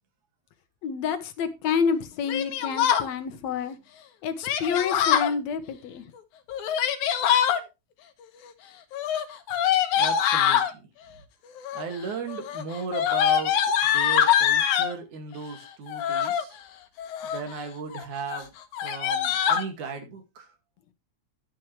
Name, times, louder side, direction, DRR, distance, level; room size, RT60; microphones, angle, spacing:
voice 1, 0.8-3.8 4.2-6.0, left 6 dB, 70° left, 2.3 m, -28 dB
Yell, 2.3-3.1 4.4-5.3 6.5-7.6 8.9-10.7 11.6-12.0 12.3-14.9 15.9-16.4 17.0-17.5 17.9-18.0 18.3-18.4 18.7-19.6, left 9 dB, 90° left, 2.5 m, -24 dB
voice 2, 10.0-10.9 11.7-13.5 13.8-16.6 17.2-18.5 18.8-20.5, right 5 dB, 90° right, 3.6 m, -36 dB
11.5 x 9.2 x 3.2 m
omnidirectional pair, 3.3 m